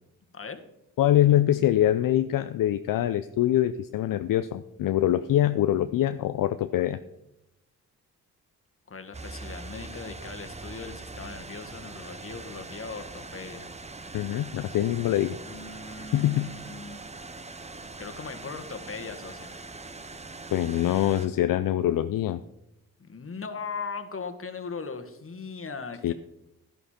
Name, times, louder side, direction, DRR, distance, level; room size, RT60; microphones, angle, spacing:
voice 1, 1.0-7.0 14.1-15.4 16.1-16.5 20.5-22.4 26.0-26.1, left 12 dB, 65° left, 11 dB, 0.6 m, -24 dB
voice 2, 8.9-13.7 15.4-17.0 17.8-19.5 23.0-26.1, left 5 dB, 35° left, 7 dB, 1.7 m, -39 dB
sound 1, 9.1-21.3, right 3 dB, 20° right, 0.8 m, -42 dB
11.0 x 11.0 x 4.4 m, 0.85 s
supercardioid pair, 50°, 37 cm